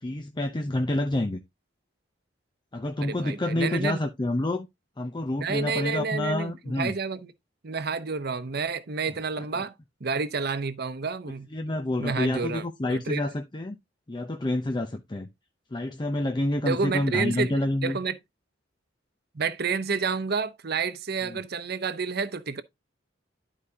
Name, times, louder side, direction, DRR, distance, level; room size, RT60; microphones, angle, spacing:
voice 1, 0.0-1.4 2.7-4.7 5.0-6.9 11.5-13.8 14.1-15.3 15.7-18.0 21.2-21.4, left 1 dB, 25° left, 0.6 m, -28 dB
voice 2, 3.0-4.0 5.4-7.3 7.6-9.7 10.0-11.7 12.0-12.6 12.9-13.2 16.6-18.2 19.3-22.6, right 5 dB, 55° right, 0.8 m, -30 dB
12.0 x 4.9 x 2.8 m
head